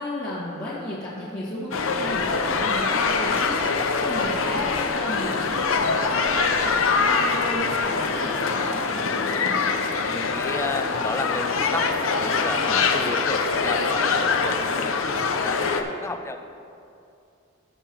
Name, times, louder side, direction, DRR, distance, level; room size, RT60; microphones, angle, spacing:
voice 1, 0.0-9.6 12.5-12.8, left 1 dB, 50° left, -9 dB, 1.6 m, -34 dB
sound 1, 1.7-15.8, left 4 dB, 90° left, 0.6 m, -24 dB
voice 2, 10.0-16.4, left 2 dB, 15° left, 7 dB, 0.4 m, -33 dB
17.0 x 5.9 x 3.0 m, 2.6 s
head